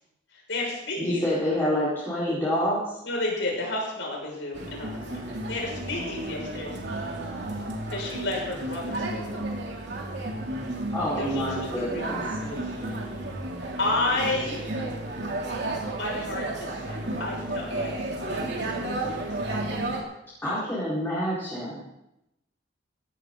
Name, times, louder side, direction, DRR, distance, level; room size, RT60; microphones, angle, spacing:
voice 1, 0.3-1.8 3.0-7.1 7.9-9.5 11.1-12.0 12.3-13.1 13.8-14.7 15.9-19.4 20.6-20.7, left 2 dB, 75° left, -1 dB, 6.1 m, -32 dB
voice 2, 1.0-2.9 10.9-12.2 20.4-22.0, equal, 10° left, -10 dB, 4.8 m, -27 dB
sound 1, 4.5-20.0, right 2 dB, 60° right, 3.1 m, -32 dB
17.0 x 14.0 x 4.0 m, 0.86 s
head